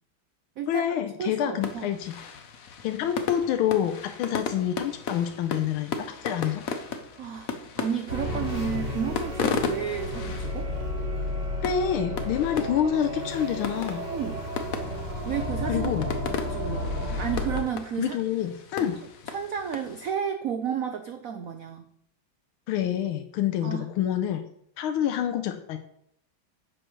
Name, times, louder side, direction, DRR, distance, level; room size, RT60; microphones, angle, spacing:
voice 1, 0.7-2.2 2.8-6.6 11.6-14.0 15.7-16.1 18.0-19.0 22.7-24.4 24.8-25.8, left 10 dB, 85° left, 7 dB, 1.5 m, -27 dB
voice 2, 1.2-1.9 7.2-10.7 14.1-14.5 15.2-18.2 18.8-18.9 19.3-21.9 23.6-23.9, right 8 dB, 80° right, 7 dB, 0.7 m, -32 dB
sound 1, 1.6-20.1, left 5 dB, 55° left, 1.0 m, -36 dB
sound 2, 8.1-17.6, left 1 dB, 55° right, 3.4 m, -32 dB
10.5 x 7.8 x 3.2 m, 0.71 s
omnidirectional pair, 2.3 m